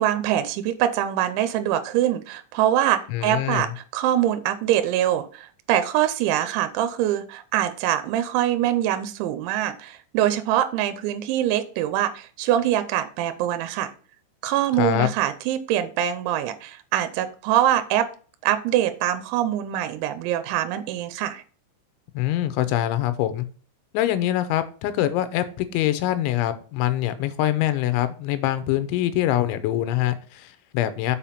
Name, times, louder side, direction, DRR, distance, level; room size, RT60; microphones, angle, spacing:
voice 1, 0.0-13.9 14.4-18.1 18.4-21.4, right 11 dB, 85° right, 9 dB, 3.0 m, -24 dB
voice 2, 3.1-3.7 14.8-15.1 22.2-23.5 23.9-31.2, left 13 dB, 90° left, 12 dB, 3.2 m, -24 dB
7.2 x 5.0 x 5.7 m, 0.40 s
omnidirectional pair, 5.3 m